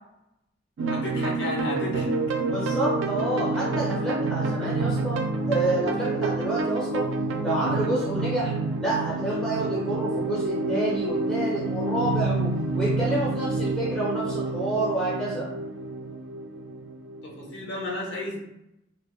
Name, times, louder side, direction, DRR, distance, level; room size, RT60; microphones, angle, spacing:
voice 1, 0.8-2.2 17.2-18.4, left 1 dB, 60° left, -2 dB, 0.6 m, -33 dB
sound 1, 0.8-17.7, right 3 dB, 65° right, 0.4 m, -28 dB
voice 2, 2.5-5.2 5.5-7.1 7.4-8.5 8.8-15.5, right 1 dB, ahead, -7 dB, 0.5 m, -28 dB
2.7 x 2.1 x 3.0 m, 0.86 s
head